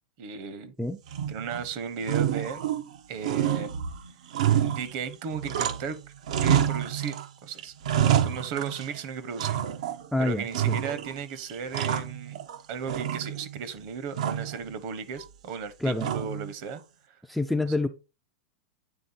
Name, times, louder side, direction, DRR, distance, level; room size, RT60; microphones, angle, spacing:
voice 1, 0.2-0.7 1.3-2.7 3.1-3.7 4.6-6.0 6.3-7.1 7.4-7.7 8.0-9.6 10.2-12.4 12.7-16.8, right 6 dB, 40° right, 1.1 m, -35 dB
sound 1, 1.1-1.7 2.0-3.0 3.2-6.0 6.3-7.3 7.6-9.0 9.4-10.1 10.5-11.2 11.5-12.6 12.9-13.6 14.1-14.6 16.0-16.5, right 10 dB, 70° right, 1.0 m, -27 dB
voice 2, 10.1-10.8 15.8-16.1 17.3-17.9, left 2 dB, ahead, 0.4 m, -27 dB
9.1 x 3.7 x 4.1 m
supercardioid pair, 160°, 4 cm